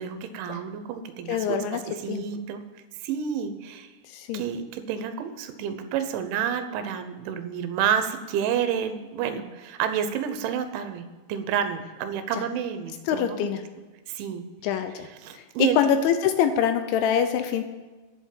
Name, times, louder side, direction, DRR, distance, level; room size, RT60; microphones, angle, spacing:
voice 1, 0.0-2.6 3.0-3.9 4.3-13.5 14.1-14.5 15.2-15.8, right 8 dB, 80° right, 9 dB, 3.2 m, -29 dB
voice 2, 1.3-1.8 2.1-2.2 4.1-4.4 13.1-13.6 14.6-15.1 15.3-15.4 15.8-17.6, left 8 dB, 80° left, 8 dB, 3.0 m, -24 dB
10.5 x 7.0 x 8.5 m, 1.2 s
omnidirectional pair, 5.5 m